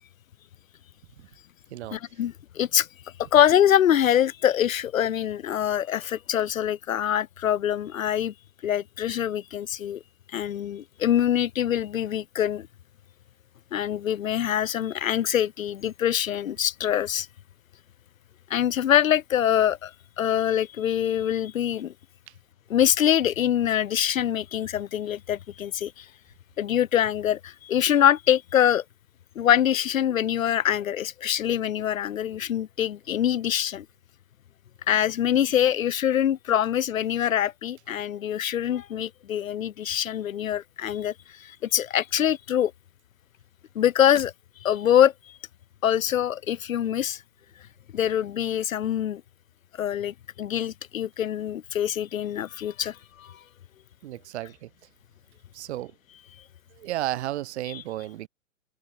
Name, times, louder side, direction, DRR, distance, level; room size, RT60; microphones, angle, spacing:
voice 1, 1.9-2.9 3.2-8.3 8.6-10.0 10.3-12.7 13.7-17.3 18.5-21.9 22.7-26.1 26.6-28.8 29.4-33.9 34.9-42.7 43.7-44.3 44.6-45.4 45.8-47.2 47.9-49.2 49.8-53.4 57.7-57.8, left 10 dB, 75° left, 0.6 m, -24 dB
voice 2, 54.0-54.7 55.5-55.9 56.8-58.3, right 15 dB, 55° right, 0.7 m, -33 dB
open air
figure-of-eight pair, 105°, 40 cm